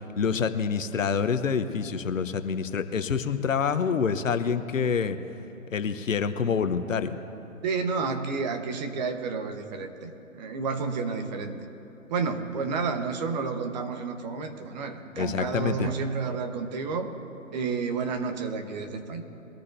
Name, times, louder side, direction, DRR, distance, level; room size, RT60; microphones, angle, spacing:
voice 1, 0.2-5.2 5.7-7.2 15.2-15.9, left 6 dB, 70° left, 10 dB, 1.0 m, -27 dB
voice 2, 7.6-11.6 12.1-17.1 17.5-19.2, right 4 dB, 30° right, 6 dB, 1.2 m, -30 dB
22.5 x 13.5 x 2.7 m, 3.0 s
figure-of-eight pair, 135°, 41 cm